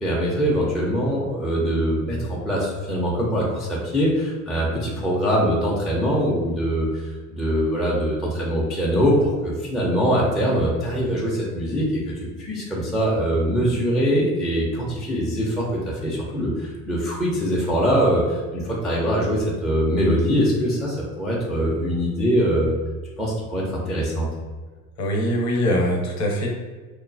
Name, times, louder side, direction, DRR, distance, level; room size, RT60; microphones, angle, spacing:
voice 1, 0.0-12.1 12.4-22.7 23.2-24.3, equal, ahead, -5 dB, 0.4 m, -23 dB
voice 2, 25.0-26.5, equal, 40° left, 0 dB, 0.7 m, -22 dB
3.0 x 2.0 x 2.5 m, 1.4 s
hypercardioid pair, 70°, 46 cm